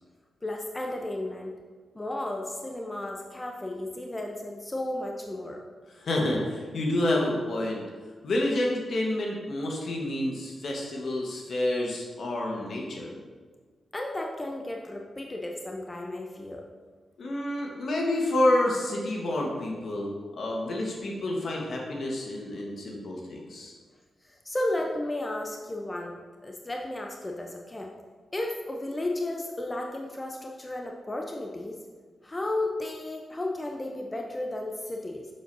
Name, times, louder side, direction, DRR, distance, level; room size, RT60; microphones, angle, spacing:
voice 1, 0.4-1.5 1.9-5.6 13.9-16.6 24.2-26.2 26.4-27.9 28.3-31.8 32.2-35.3, left 1 dB, 25° left, 1 dB, 0.7 m, -33 dB
voice 2, 6.0-7.8 8.2-13.1 17.2-23.7, left 1 dB, 65° left, -1 dB, 1.3 m, -29 dB
6.5 x 6.3 x 2.7 m, 1.5 s
supercardioid pair, 45°, 0 cm